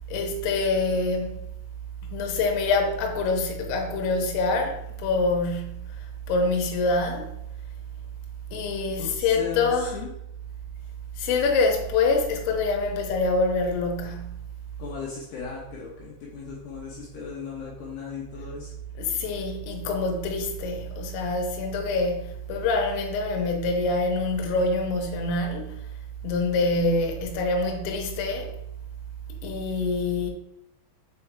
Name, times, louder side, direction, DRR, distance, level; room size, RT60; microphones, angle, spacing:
voice 1, 0.1-1.4 2.0-6.0 6.3-7.4 8.5-9.9 11.2-14.4 19.0-25.9 26.2-28.5 29.4-30.3, left 3 dB, 90° left, 3.5 m, -25 dB
voice 2, 9.0-10.1 14.8-18.7, left 6 dB, 75° left, 2.6 m, -37 dB
6.8 x 4.8 x 3.4 m
omnidirectional pair, 5.8 m